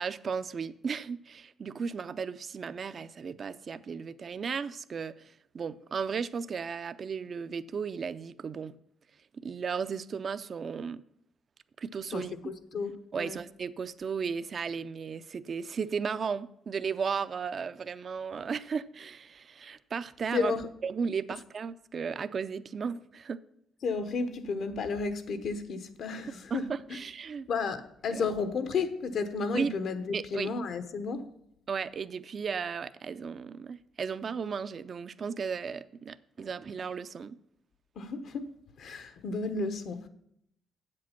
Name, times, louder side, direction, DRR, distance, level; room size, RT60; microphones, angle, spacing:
voice 1, 0.0-8.8 9.3-11.0 11.8-12.3 13.1-20.5 20.8-23.4 26.5-27.5 28.1-28.2 29.5-29.7 30.1-30.5 31.7-37.4, right 6 dB, 45° right, 0.5 m, -35 dB
voice 2, 12.1-12.9 13.2-13.4 20.3-20.7 23.8-26.7 27.5-31.3 38.0-38.5 38.8-40.1, left 4 dB, 65° left, 1.1 m, -32 dB
8.1 x 7.6 x 5.8 m
cardioid pair, 90°, 0 cm